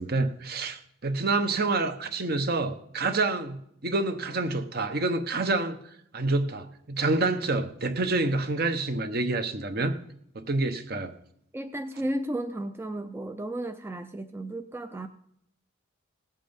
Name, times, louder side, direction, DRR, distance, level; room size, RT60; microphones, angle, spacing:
voice 1, 0.0-5.8 6.1-9.9 10.3-11.1, right 3 dB, 45° right, 9 dB, 1.0 m, -27 dB
voice 2, 11.5-15.1, right 1 dB, 10° right, 7 dB, 0.4 m, -33 dB
18.0 x 7.6 x 5.2 m, 0.75 s
head